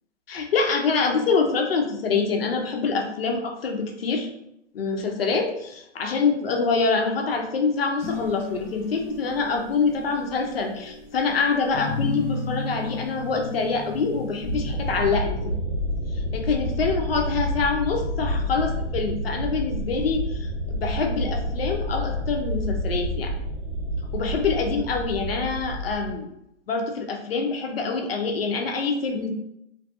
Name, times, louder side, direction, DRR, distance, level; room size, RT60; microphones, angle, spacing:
voice 1, 0.3-4.3 4.7-15.4 16.3-23.3 24.1-26.3 26.7-29.3, left 4 dB, 55° left, 3 dB, 0.5 m, -25 dB
sound 1, 8.0-14.9, left 4 dB, 5° left, 0.6 m, -34 dB
sound 2, 14.4-26.1, equal, 35° left, 0.9 m, -29 dB
2.6 x 2.6 x 2.3 m, 0.80 s
hypercardioid pair, 170°, 37 cm